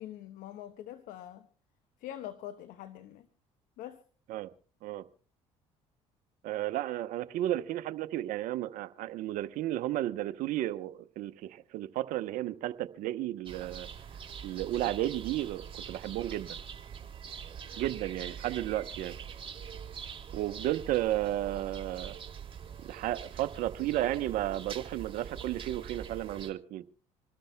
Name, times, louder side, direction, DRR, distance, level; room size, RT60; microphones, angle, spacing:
voice 1, 0.0-1.5 2.0-3.3 3.8-4.0, left 12 dB, 75° left, 10 dB, 1.0 m, -44 dB
voice 2, 6.4-13.9 14.4-16.6 17.8-19.2 20.3-22.2 22.8-26.8, right 14 dB, 70° right, 13 dB, 0.8 m, -33 dB
sound 1, 13.5-26.5, right 7 dB, 40° right, 2.6 m, -44 dB
27.0 x 13.0 x 2.2 m, 0.41 s
supercardioid pair, 65°, 14 cm